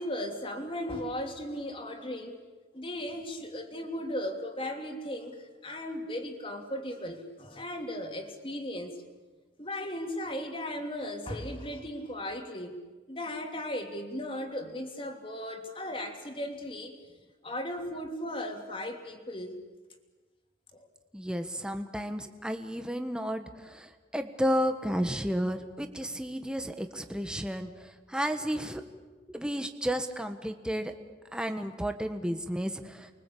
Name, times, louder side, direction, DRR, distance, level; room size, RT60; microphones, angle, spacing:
voice 1, 0.0-2.4 2.7-9.0 9.6-12.8 13.1-16.9 17.4-19.6 20.7-20.9, left 1 dB, 30° left, 4 dB, 3.0 m, -36 dB
voice 2, 21.1-28.9 29.3-30.9 31.3-33.1, equal, 5° right, 6 dB, 1.4 m, -32 dB
29.5 x 23.5 x 8.6 m, 1.3 s
head